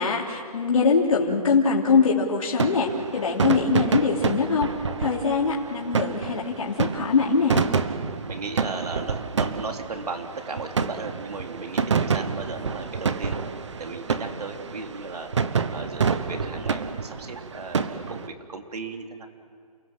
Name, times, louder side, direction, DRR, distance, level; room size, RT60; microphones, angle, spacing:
voice 1, 0.0-4.7 5.0-7.6, left 4 dB, 60° left, -3 dB, 3.2 m, -23 dB
sound 1, 2.6-18.3, right 5 dB, 50° right, 1.2 m, -28 dB
voice 2, 8.3-13.4 13.8-15.3 15.7-19.3, right 3 dB, 85° right, 4 dB, 3.5 m, -36 dB
29.5 x 18.0 x 7.6 m, 2.3 s
hypercardioid pair, 180°, 19 cm